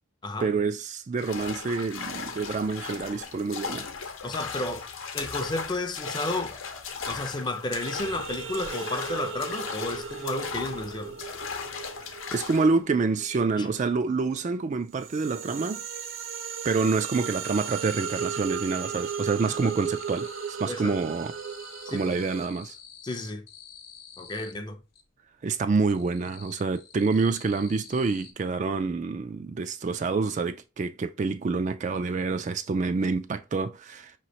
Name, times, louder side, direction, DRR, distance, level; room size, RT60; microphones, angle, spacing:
voice 1, 0.4-3.9 12.1-15.8 16.6-21.3 21.9-22.7 25.4-34.1, right 4 dB, 35° right, 0.3 m, -27 dB
sound 1, 1.2-12.7, left 5 dB, 85° left, 0.8 m, -37 dB
voice 2, 4.2-4.9 5.1-6.6 7.1-11.2 13.6-13.7 19.5-19.7 20.6-21.0 21.9-22.2 23.0-23.5 24.2-24.8, left 2 dB, 20° left, 0.5 m, -32 dB
sound 2, 7.8-14.2 14.6-22.5, right 6 dB, 75° right, 0.6 m, -36 dB
sound 3, 15.9-16.7 17.0-17.7 18.0-20.6 20.9-25.1 25.5-28.3, left 7 dB, 50° left, 0.8 m, -50 dB
5.5 x 3.0 x 2.8 m
head